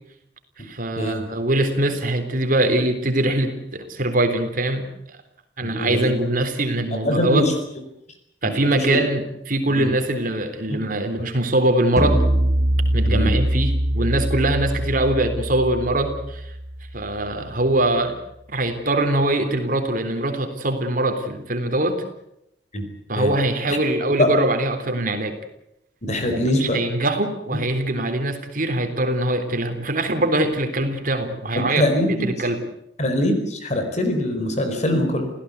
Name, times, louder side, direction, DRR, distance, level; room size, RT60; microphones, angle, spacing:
voice 1, 0.6-4.9 5.6-7.5 8.4-12.2 12.9-16.5 16.9-18.2 18.5-22.0 23.1-25.3 26.3-32.6, right 1 dB, 50° right, 6 dB, 3.6 m, -22 dB
voice 2, 5.6-6.1 7.0-7.5 8.4-9.0 9.7-9.9 10.7-10.8 13.0-13.3 22.7-22.9 23.2-23.3 24.2-24.3 26.0-26.8 31.7-32.3 33.0-35.3, left 1 dB, 40° left, 6 dB, 4.6 m, -22 dB
sound 1, 12.0-17.3, right 1 dB, 15° right, 2.0 m, -23 dB
28.5 x 16.5 x 8.3 m, 0.81 s
head